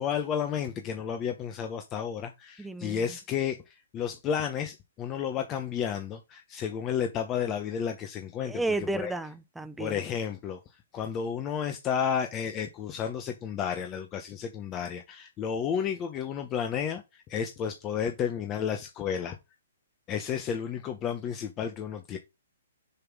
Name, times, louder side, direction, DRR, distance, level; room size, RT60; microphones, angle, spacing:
voice 1, 0.0-9.1 9.8-19.4 20.1-22.2, left 8 dB, 25° left, 0.9 m, -32 dB
voice 2, 2.6-3.0 8.4-10.0, right 2 dB, 5° right, 0.6 m, -32 dB
6.7 x 3.5 x 6.0 m
hypercardioid pair, 135°, 0 cm